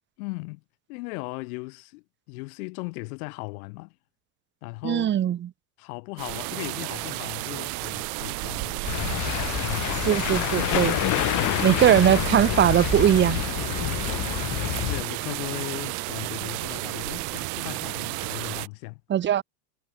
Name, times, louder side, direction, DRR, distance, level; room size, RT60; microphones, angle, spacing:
voice 1, 0.2-0.6 0.9-4.0 4.6-5.2 5.8-8.9 9.5-10.3 10.7-12.2 13.8-14.5 14.9-19.0, left 27 dB, 60° left, 2.6 m, -37 dB
voice 2, 4.8-5.4 10.1-10.9 11.6-13.4 19.1-19.4, right 10 dB, 20° right, 1.2 m, -20 dB
sound 1, 6.2-18.7, right 30 dB, 35° right, 0.6 m, -32 dB
sound 2, 8.8-15.0, left 19 dB, 35° left, 1.4 m, -27 dB
supercardioid pair, 140°, 50 cm